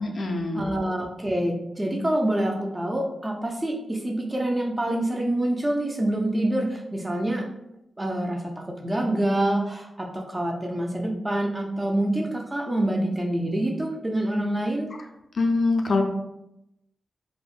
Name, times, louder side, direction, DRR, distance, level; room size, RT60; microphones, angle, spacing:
voice 1, 0.0-0.7 15.4-16.0, left 3 dB, 65° left, 3 dB, 0.4 m, -24 dB
voice 2, 0.5-7.5 8.0-14.9, right 1 dB, 25° right, 1 dB, 0.5 m, -26 dB
3.4 x 2.1 x 2.4 m, 0.86 s
cardioid pair, 65°, 0 cm